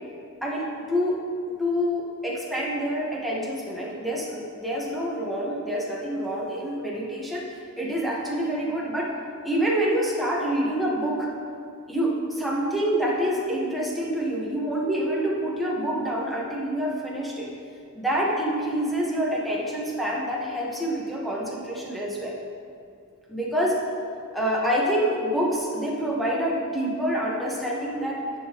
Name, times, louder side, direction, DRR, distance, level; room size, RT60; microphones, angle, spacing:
voice 1, 0.4-1.2 1.6-7.4 7.8-9.1 9.4-11.3 11.9-17.5 17.9-22.4 23.3-23.7 24.3-28.2, equal, ahead, -5 dB, 1.4 m, -27 dB
10.5 x 8.0 x 3.1 m, 2.3 s
head